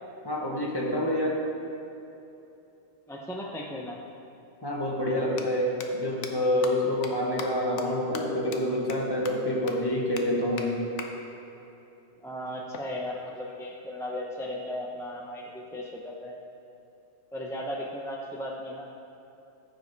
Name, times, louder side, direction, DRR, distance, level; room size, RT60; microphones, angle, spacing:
voice 1, 0.2-1.4 4.6-10.8, left 1 dB, 20° left, -2 dB, 1.1 m, -27 dB
voice 2, 3.1-4.0 12.2-16.4 17.3-18.9, left 1 dB, 5° left, -2 dB, 0.4 m, -36 dB
sound 1, 4.1-4.2 5.2-5.4 5.8-5.9 6.2-6.3 6.6-6.7 7.0-7.1 7.4-7.5 7.8-7.9 8.1-8.2 8.5-8.6 8.9-9.0 9.2-9.3 9.7-9.8 10.2-10.3 10.6-10.7 11.0-11.1 12.7-13.7, left 7 dB, 85° left, 1.1 m, -39 dB
14.5 x 5.2 x 4.0 m, 2.9 s
omnidirectional pair, 1.2 m